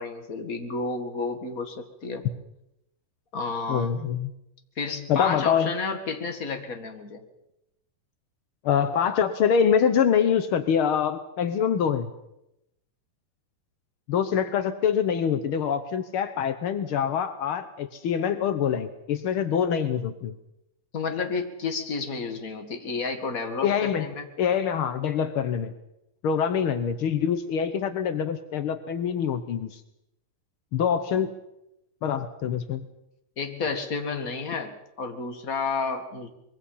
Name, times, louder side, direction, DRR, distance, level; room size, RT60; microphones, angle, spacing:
voice 1, 0.0-2.2 3.3-3.9 4.8-7.2 20.9-24.3 33.4-36.3, left 4 dB, 30° left, 6 dB, 1.8 m, -31 dB
voice 2, 3.7-4.3 5.1-5.7 8.6-12.1 14.1-20.3 23.6-24.0 24.4-25.7 26.2-29.8 30.7-31.3 32.0-32.8, left 7 dB, 85° left, 10 dB, 1.1 m, -25 dB
24.5 x 22.5 x 5.7 m, 0.85 s
omnidirectional pair, 3.9 m